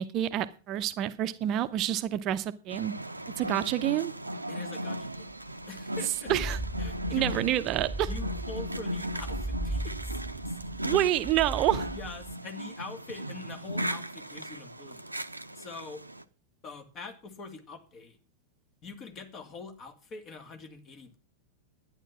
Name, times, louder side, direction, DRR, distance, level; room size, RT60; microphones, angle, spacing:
voice 1, 0.0-2.9 3.4-4.1 6.3-6.6 7.1-8.1 10.8-11.9, right 12 dB, 35° right, 11 dB, 0.8 m, -28 dB
sound 1, 2.7-16.2, equal, 85° right, 0.7 m, -37 dB
voice 2, 4.5-5.3 5.7-6.3 6.8-7.3 8.0-10.6 11.9-15.0 15.5-16.0 16.6-18.2 18.8-21.2, left 4 dB, 30° left, 6 dB, 2.4 m, -44 dB
sound 2, 5.6-5.7 6.1-12.3, right 1 dB, 5° right, 1.3 m, -37 dB
11.5 x 9.8 x 5.9 m, 0.36 s
figure-of-eight pair, 90°, 0 cm